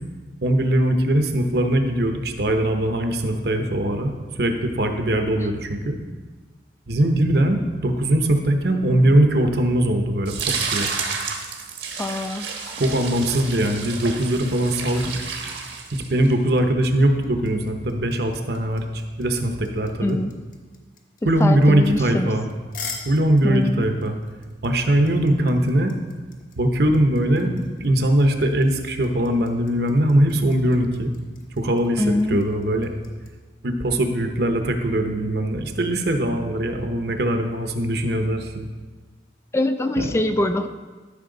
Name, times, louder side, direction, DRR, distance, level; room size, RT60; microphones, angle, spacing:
voice 1, 0.4-6.0 6.9-10.9 12.8-15.1 15.9-18.8 19.2-20.2 21.2-22.5 23.0-24.2 24.6-25.9 26.6-31.1 31.6-32.9 33.6-38.7 40.0-40.1, right 1 dB, 60° right, 5 dB, 0.9 m, -21 dB
sound 1, 10.3-16.3, right 5 dB, 80° right, 1.3 m, -30 dB
voice 2, 12.0-12.5 20.0-20.3 21.4-22.3 23.4-23.9 32.0-32.4 39.5-40.7, left 1 dB, 15° left, 8 dB, 0.3 m, -23 dB
sound 2, 16.5-33.3, left 5 dB, 50° left, 1.1 m, -42 dB
13.0 x 5.6 x 3.9 m, 1.4 s
head